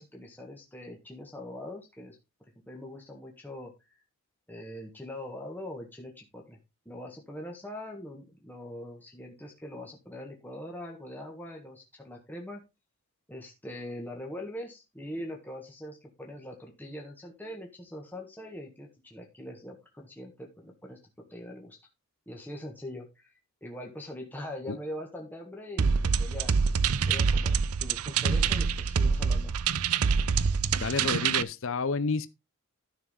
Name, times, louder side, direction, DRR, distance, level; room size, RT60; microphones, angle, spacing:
voice 1, 0.0-2.2 2.7-3.7 4.5-6.6 6.8-12.6 13.3-21.0 21.3-21.8 22.3-26.5 27.1-29.5, left 1 dB, 10° left, 1.6 m, -42 dB
sound 1, 25.8-31.4, right 5 dB, 80° right, 0.6 m, -26 dB
voice 2, 30.8-32.3, left 4 dB, 60° left, 0.6 m, -30 dB
13.0 x 6.1 x 3.7 m
head